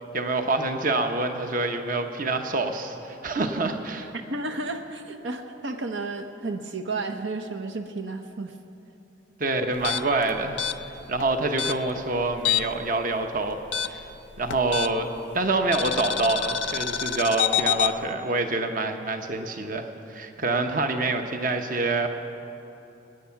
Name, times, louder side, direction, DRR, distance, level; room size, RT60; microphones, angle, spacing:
voice 1, 0.1-4.1 9.4-10.6 11.1-13.6 13.9-14.1 14.4-15.1 15.3-22.1, right 2 dB, 45° right, 6 dB, 0.9 m, -26 dB
voice 2, 4.1-8.5, right 3 dB, 80° right, 6 dB, 0.9 m, -32 dB
sound 1, 9.7-12.9 13.1-15.2 15.7-17.9, left 9 dB, 75° left, 0.5 m, -27 dB
24.5 x 9.7 x 5.8 m, 2.9 s
head